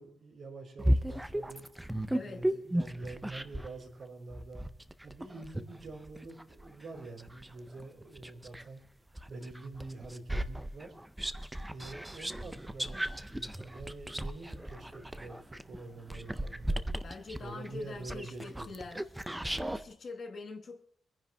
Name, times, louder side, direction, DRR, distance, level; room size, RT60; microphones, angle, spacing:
voice 1, 0.0-1.7 2.2-4.6 5.0-8.8 9.3-10.9 11.6-16.9 17.4-18.7, right 3 dB, 55° right, 4.5 m, -46 dB
sound 1, 0.8-3.8 4.3-8.7 9.2-19.8, right 1 dB, 5° right, 0.4 m, -35 dB
voice 2, 2.1-2.5 17.0-19.0 19.5-20.8, left 3 dB, 45° left, 1.2 m, -44 dB
25.0 x 10.0 x 2.2 m
wide cardioid pair, 170°, 0 cm